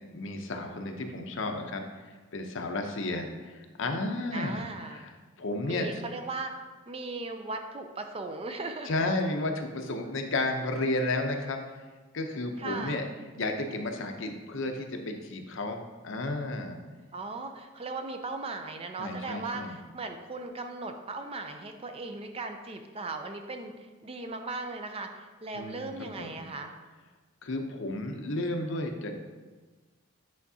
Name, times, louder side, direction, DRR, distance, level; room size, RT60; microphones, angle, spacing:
voice 1, 0.1-5.9 8.8-11.6 12.1-13.1 13.3-16.8 19.0-19.8 25.5-26.5 27.4-29.2, left 2 dB, 65° left, 4 dB, 0.7 m, -33 dB
voice 2, 4.3-5.1 5.6-6.5 6.9-8.9 12.6-13.0 17.1-26.7, right 3 dB, 30° right, 6 dB, 0.5 m, -38 dB
8.4 x 4.6 x 2.7 m, 1.3 s
head